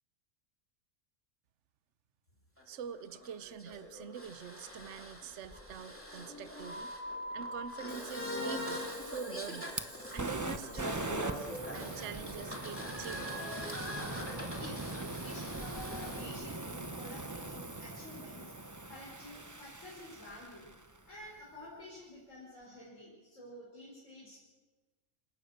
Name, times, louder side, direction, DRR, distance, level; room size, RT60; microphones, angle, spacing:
sound 1, 2.6-16.3, equal, 10° left, 3.0 m, -43 dB
voice 1, 2.7-6.9 7.3-9.7 10.1-13.4, right 7 dB, 70° right, 13 dB, 1.1 m, -45 dB
Fire, 7.9-21.0, right 2 dB, 15° right, 1.0 m, -42 dB
voice 2, 14.5-20.7 21.1-24.4, left 1 dB, 85° left, -5 dB, 5.2 m, -50 dB
27.5 x 16.5 x 6.6 m, 1.3 s
omnidirectional pair, 1.3 m